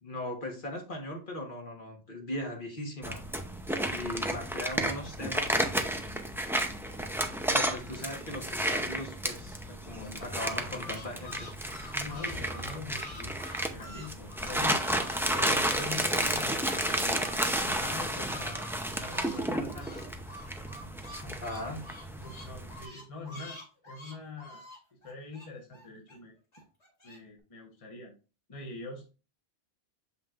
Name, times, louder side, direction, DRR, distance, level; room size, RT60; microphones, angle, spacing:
voice 1, 0.0-3.2 3.9-5.6 7.5-11.5 21.2-21.8, left 1 dB, 50° left, 1 dB, 1.5 m, -39 dB
sound 1, 3.0-22.8, right 1 dB, 5° right, 0.4 m, -32 dB
sound 2, 10.0-15.2 15.5-19.4 19.7-26.2 26.5-27.2, left 1 dB, 80° left, 3.0 m, -47 dB
voice 2, 11.9-13.5 13.7-14.8 15.3-18.7 19.0-20.1 22.2-24.6 25.0-26.3 27.0-28.1 28.5-29.0, left 3 dB, 30° left, 0 dB, 1.1 m, -43 dB
7.3 x 5.6 x 2.5 m, 0.33 s
omnidirectional pair, 1.1 m